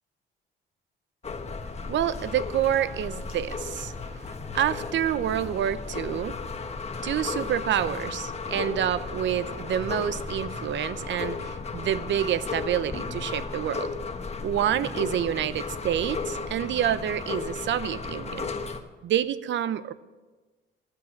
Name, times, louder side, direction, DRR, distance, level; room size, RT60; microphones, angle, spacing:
sound 1, 1.2-18.8, left 4 dB, 30° left, 1.2 m, -34 dB
voice 1, 1.9-3.9 4.5-6.4 7.0-13.9 14.4-18.5 19.0-19.9, right 10 dB, 70° right, 15 dB, 0.7 m, -28 dB
15.0 x 9.9 x 6.4 m, 1.3 s
cardioid pair, 90°, 20 cm